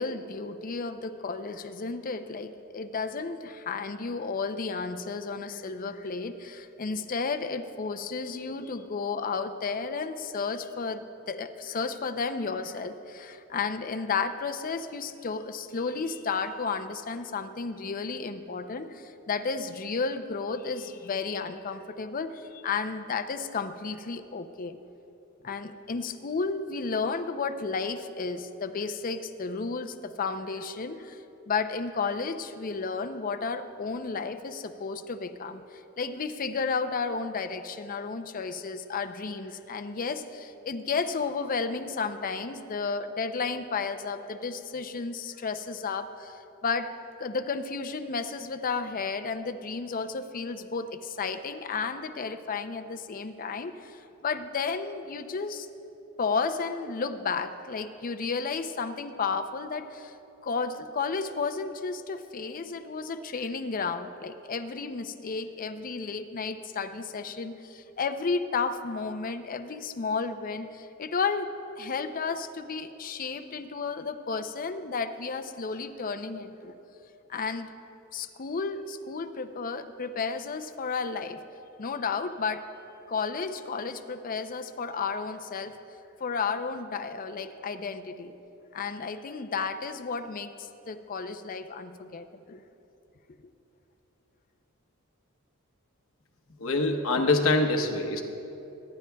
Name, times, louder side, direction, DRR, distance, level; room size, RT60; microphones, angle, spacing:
voice 1, 0.0-24.8 25.4-31.2 31.5-46.9 47.2-55.7 56.2-60.2 60.4-76.7 77.3-77.7 78.1-81.4 81.8-82.6 83.1-85.8 86.2-88.3 88.7-92.6, left 4 dB, 40° left, 8 dB, 0.5 m, -32 dB
voice 2, 96.6-98.2, left 2 dB, 70° left, 4 dB, 1.0 m, -24 dB
22.0 x 10.5 x 2.3 m, 2.9 s
head